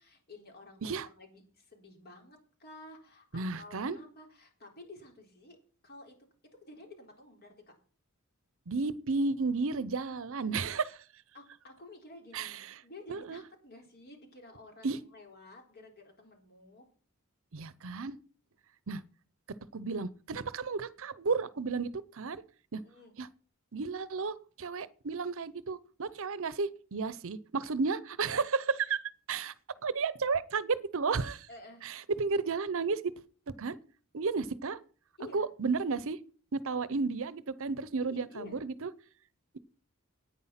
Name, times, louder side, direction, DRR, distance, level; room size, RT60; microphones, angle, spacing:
voice 1, 0.0-5.6 5.8-6.1 6.6-7.7 10.5-10.6 11.3-16.9 22.8-23.1 31.5-31.9 35.2-35.5 38.0-38.6, left 2 dB, 45° left, 3.9 m, -52 dB
voice 2, 3.3-4.0 8.7-10.9 12.3-12.7 13.1-13.4 14.8-15.0 17.5-18.2 18.9-19.0 19.7-22.4 22.7-22.8 23.2-23.3 23.7-29.0 29.3-29.5 29.8-31.5 31.8-33.0 33.6-33.8 34.1-34.8 35.3-36.2 36.5-38.9, right 4 dB, 65° right, 0.7 m, -33 dB
9.8 x 9.4 x 5.8 m
head